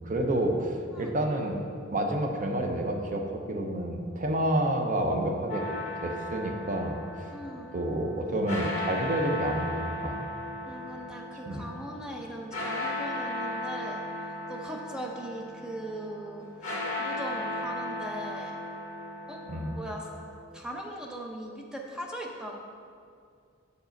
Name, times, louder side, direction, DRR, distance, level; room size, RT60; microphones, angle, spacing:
voice 1, 0.0-5.6 5.9-7.3 7.7-10.3 11.5-11.6 19.5-19.8, right 1 dB, 40° right, 2 dB, 0.7 m, -29 dB
sound 1, 5.5-20.4, left 1 dB, 35° left, 1.4 m, -36 dB
voice 2, 7.3-7.7 10.6-18.6 19.3-19.4 19.7-20.1 20.5-22.6, right 1 dB, 5° right, 0 dB, 0.6 m, -40 dB
6.8 x 4.9 x 5.1 m, 2.3 s
head